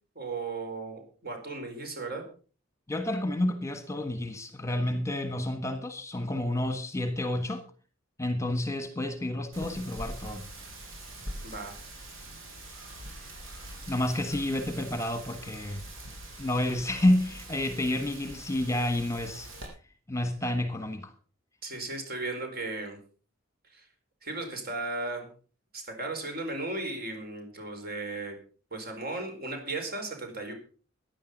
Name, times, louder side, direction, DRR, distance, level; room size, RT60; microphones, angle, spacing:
voice 1, 0.1-2.2 11.4-11.7 21.6-23.0 23.7-23.8 24.2-25.3 25.7-28.4 28.7-30.5, right 3 dB, 50° right, 5 dB, 4.7 m, -36 dB
voice 2, 2.9-7.6 8.2-10.5 13.9-15.8 16.4-19.5 20.1-21.1, left 1 dB, 15° left, 9 dB, 1.4 m, -29 dB
Wind, 9.5-19.7, right 1 dB, 85° right, 5.8 m, -44 dB
15.5 x 10.5 x 5.3 m, 0.39 s
head